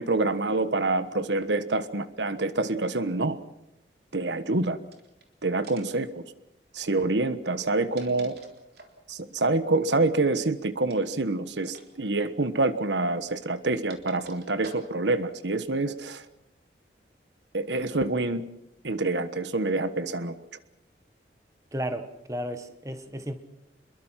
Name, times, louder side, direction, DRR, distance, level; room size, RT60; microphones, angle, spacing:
voice 1, 0.0-3.4 4.1-4.8 5.4-6.2 6.7-8.4 9.1-16.2 17.5-18.4 18.8-20.3, right 2 dB, 85° right, 12 dB, 1.3 m, -26 dB
sound 1, 4.9-5.3 5.6-6.1 7.5-9.0 10.8-11.1 11.6-11.9 12.2-12.3 13.2-15.2, right 4 dB, 65° right, 3.7 m, -49 dB
voice 2, 21.7-23.3, equal, 20° right, 9 dB, 1.5 m, -33 dB
28.0 x 22.0 x 5.9 m, 0.87 s
head